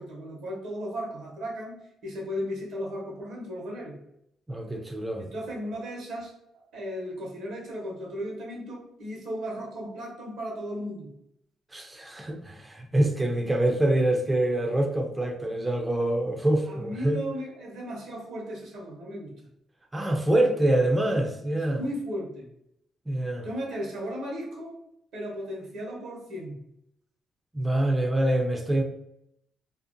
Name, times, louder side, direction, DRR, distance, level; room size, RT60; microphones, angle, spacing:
voice 1, 0.0-4.0 5.2-6.3 6.7-11.1 16.7-19.3 21.8-22.5 23.4-24.8 25.1-26.6, equal, 75° right, 0.9 m, -35 dB
voice 2, 4.5-5.2 11.7-17.2 19.9-21.8 23.1-23.5 27.5-28.8, right 1 dB, 15° right, 0.4 m, -25 dB
2.5 x 2.1 x 2.5 m
cardioid pair, 90°, 0 cm